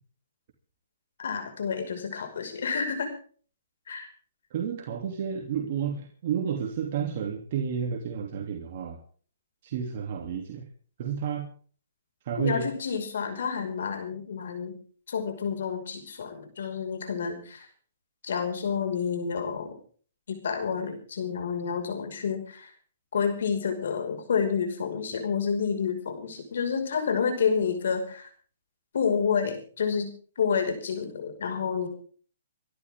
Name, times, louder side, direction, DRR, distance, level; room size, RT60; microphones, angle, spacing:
voice 1, 1.2-3.1 3.9-4.1 12.4-14.8 15.1-17.7 18.2-19.8 20.3-22.7 23.1-28.3 28.9-30.1 30.4-31.9, left 6 dB, 70° left, 6 dB, 5.6 m, -29 dB
voice 2, 4.5-9.0 9.6-10.7 11.0-11.5 12.2-12.7, right 7 dB, 50° right, 1 dB, 2.9 m, -31 dB
25.5 x 12.5 x 3.7 m, 0.43 s
hypercardioid pair, 150°, 0 cm